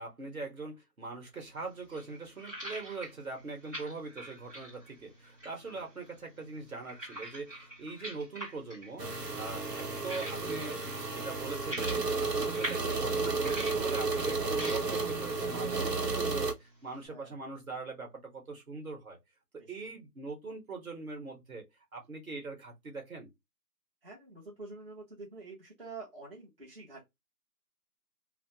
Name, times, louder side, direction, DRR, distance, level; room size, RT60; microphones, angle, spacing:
voice 1, 0.0-10.8 11.1-19.2 19.5-21.7 21.9-23.3, right 3 dB, 60° right, 1.4 m, -42 dB
sound 1, 1.3-17.1, right 1 dB, 10° right, 1.3 m, -46 dB
sound 2, 9.0-16.5, right 3 dB, 80° right, 1.0 m, -32 dB
voice 2, 24.0-27.1, right 3 dB, 35° right, 0.9 m, -47 dB
3.3 x 2.1 x 2.8 m
figure-of-eight pair, 175°, 48 cm